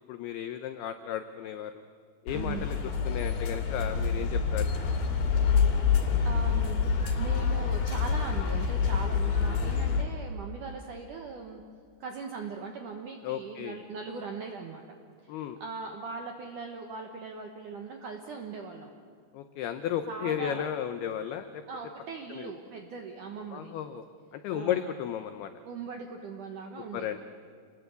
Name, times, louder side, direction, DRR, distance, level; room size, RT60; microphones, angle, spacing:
voice 1, 0.1-1.8 2.3-2.8 3.1-4.7 13.2-13.8 15.3-15.6 19.3-21.6 22.3-22.5 23.5-24.0 24.3-25.5 26.9-27.2, left 10 dB, 85° left, 9 dB, 2.2 m, -34 dB
sound 1, 2.3-10.0, left 6 dB, 55° left, 3.8 m, -27 dB
voice 2, 2.3-2.7 6.0-6.8 7.1-11.6 12.0-14.8 15.2-18.9 20.1-20.7 21.7-23.7 24.5-24.9 25.6-27.2, right 5 dB, 70° right, 3 dB, 1.9 m, -40 dB
28.0 x 20.0 x 8.2 m, 2.2 s
omnidirectional pair, 5.6 m